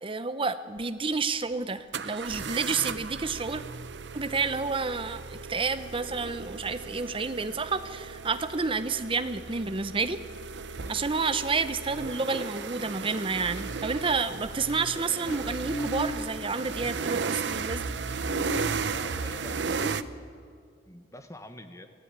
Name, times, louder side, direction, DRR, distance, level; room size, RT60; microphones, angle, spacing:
voice 1, 0.0-3.6 4.1-10.2 10.9-17.9, right 4 dB, 30° right, 11 dB, 0.9 m, -30 dB
sound 1, 0.8-0.9 1.9-20.0, right 5 dB, 70° right, 0.7 m, -35 dB
voice 2, 10.8-11.1 18.8-19.9 20.9-21.9, left 1 dB, 15° left, 8 dB, 1.3 m, -46 dB
Drawer open or close / Wood, 11.6-12.5 14.2-15.6 16.1-17.2 18.6-20.1, equal, 70° left, 7.0 m, -46 dB
sound 2, 15.6-16.5 16.8-17.1 17.3-20.5, right 1 dB, 45° left, 4.7 m, -38 dB
24.5 x 15.5 x 8.8 m, 2.1 s
head